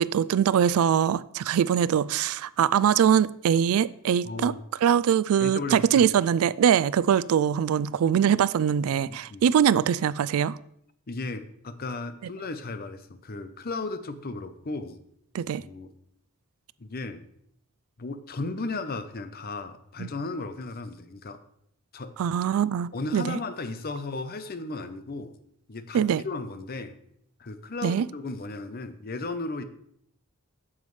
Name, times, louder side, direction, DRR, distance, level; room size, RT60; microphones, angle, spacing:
voice 1, 0.0-4.5 4.8-10.6 15.3-15.6 20.0-20.1 22.2-23.4 25.9-26.2 27.8-28.1, right 8 dB, 80° right, 0.3 m, -23 dB
voice 2, 4.2-4.6 5.4-6.1 9.1-9.4 11.1-15.0 15.6-15.9 16.8-17.2 18.0-21.4 21.9-22.1 22.9-25.3 25.7-27.0 27.4-29.6, left 3 dB, 45° left, 0.6 m, -35 dB
9.2 x 7.4 x 3.2 m
head